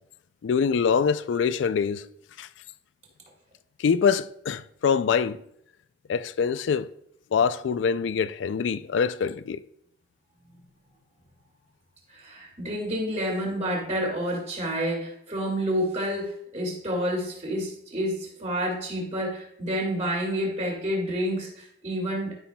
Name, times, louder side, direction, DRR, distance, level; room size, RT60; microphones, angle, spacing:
voice 1, 0.4-2.1 2.4-2.5 3.8-5.4 6.1-6.9 7.3-9.6, left 6 dB, 75° left, 0.3 m, -24 dB
voice 2, 12.1-22.3, equal, 35° right, 2.3 m, -29 dB
12.5 x 6.0 x 2.2 m
head